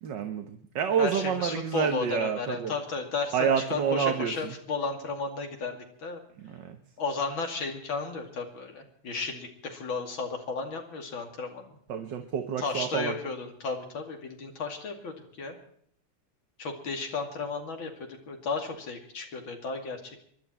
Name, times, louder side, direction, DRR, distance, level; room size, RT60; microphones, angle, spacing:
voice 1, 0.0-2.7 3.3-4.6 6.4-6.8 11.9-13.2, right 7 dB, 60° right, 7 dB, 1.7 m, -28 dB
voice 2, 1.0-6.2 7.0-11.7 12.6-15.6 16.6-20.2, left 4 dB, 65° left, 3 dB, 3.2 m, -34 dB
25.0 x 11.5 x 4.4 m, 0.63 s
omnidirectional pair, 2.3 m